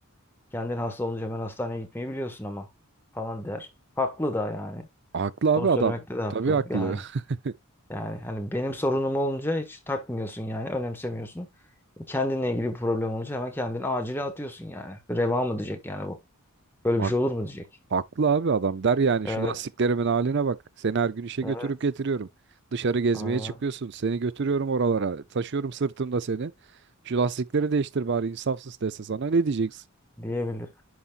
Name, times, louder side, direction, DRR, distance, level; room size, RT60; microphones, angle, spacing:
voice 1, 0.5-2.7 3.1-3.7 4.0-4.9 5.6-7.0 7.9-11.5 12.0-16.2 16.8-17.6 19.2-19.5 21.4-21.7 23.1-23.5 30.2-30.7, left 1 dB, 10° left, 1.5 m, -30 dB
voice 2, 5.1-5.9 6.3-7.1 7.4-7.5 17.0-17.1 17.9-22.3 22.7-26.5 27.1-29.8, right 4 dB, 50° right, 0.5 m, -26 dB
11.0 x 4.2 x 2.4 m
head